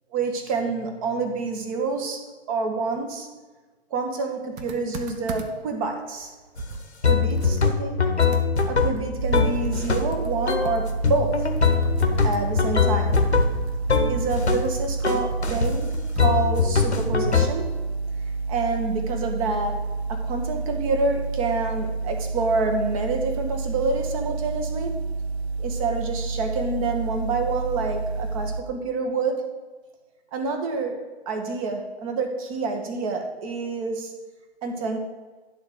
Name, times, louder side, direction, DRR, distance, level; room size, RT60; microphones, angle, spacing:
voice 1, 0.1-3.3 3.9-6.3 7.1-8.0 8.7-11.5 12.2-13.2 14.1-17.7 18.5-25.0 25.6-29.5 30.3-34.1 34.6-35.0, right 3 dB, 30° right, 4 dB, 1.4 m, -28 dB
Computer keyboard, 4.6-5.7 6.2-6.3 6.6-16.4, right 3 dB, 15° right, 0.6 m, -37 dB
sound 1, 6.6-6.7 7.0-10.1 10.5-10.7 11.0-14.7 15.0-15.7 16.2-17.5, left 5 dB, 80° left, 1.1 m, -22 dB
sound 2, 9.2-28.6, right 3 dB, 70° right, 0.6 m, -29 dB
10.5 x 3.9 x 6.7 m, 1.3 s
figure-of-eight pair, 125°, 33 cm